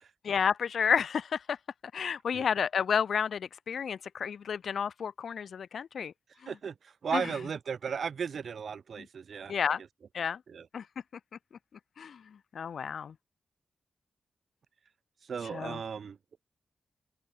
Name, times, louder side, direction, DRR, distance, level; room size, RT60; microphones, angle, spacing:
voice 1, 0.2-1.6 1.9-6.1 6.4-6.5 7.1-7.3 9.0-9.1 9.5-9.8 10.1-10.4 10.7-10.9 12.0-13.1 15.5-15.8, left 7 dB, 75° left, 1.2 m, -31 dB
voice 2, 6.5-9.5 10.5-10.7 15.2-16.2, right 6 dB, 70° right, 7.9 m, -36 dB
open air
cardioid pair, 80°, 0 cm